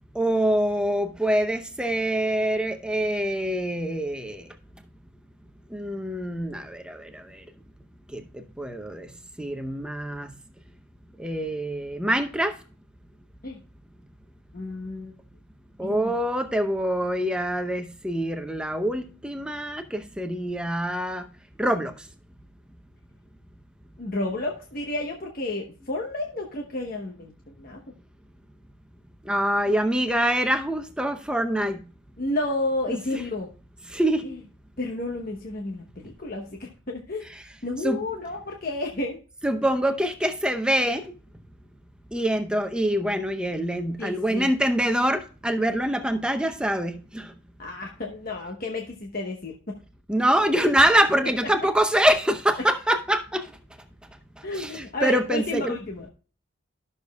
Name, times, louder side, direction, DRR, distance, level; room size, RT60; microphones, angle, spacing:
voice 1, 0.1-4.5 5.7-7.4 8.1-9.1 9.4-10.3 11.2-12.6 15.8-21.3 21.6-22.0 29.2-31.8 32.9-33.2 33.9-34.3 37.2-37.5 37.8-38.1 39.4-41.1 42.1-47.3 50.1-53.5 54.4-55.8, right 1 dB, 5° right, 0.7 m, -25 dB
voice 2, 14.5-15.1 15.8-16.1 24.0-27.8 32.2-33.5 34.8-37.3 37.6-39.2 44.0-44.5 47.6-49.8 54.4-56.1, left 2 dB, 45° left, 1.0 m, -31 dB
13.0 x 6.6 x 2.2 m
head